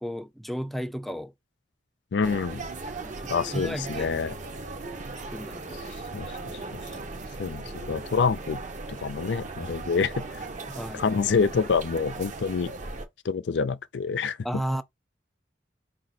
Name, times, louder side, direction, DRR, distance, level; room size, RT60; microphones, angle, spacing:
voice 1, 0.0-1.3 3.0-4.1 5.3-5.8 10.7-11.1 14.4-14.8, equal, ahead, 0.3 m, -33 dB
voice 2, 2.1-2.6 3.3-4.4 6.1-6.3 7.4-8.6 9.0-10.4 10.9-12.7 13.2-14.4, left 5 dB, 75° left, 0.5 m, -27 dB
sound 1, 2.2-13.1, right 3 dB, 40° right, 0.7 m, -38 dB
4.9 x 2.5 x 4.2 m
head